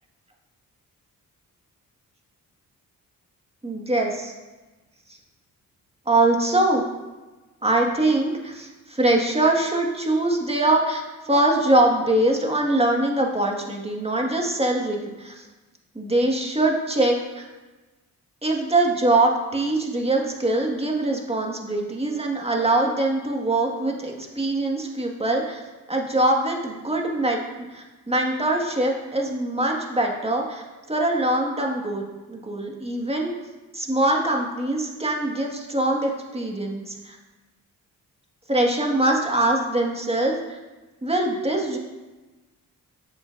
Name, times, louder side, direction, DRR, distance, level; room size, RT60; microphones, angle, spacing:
voice 1, 3.6-4.3 6.0-6.8 7.6-15.4 15.9-17.5 18.4-25.6 25.9-27.4 27.7-32.0 32.3-33.3 33.7-37.2 38.5-40.6 41.0-41.8, right 2 dB, 15° right, 0 dB, 1.8 m, -23 dB
10.0 x 7.3 x 2.6 m, 1.2 s
supercardioid pair, 50°, 37 cm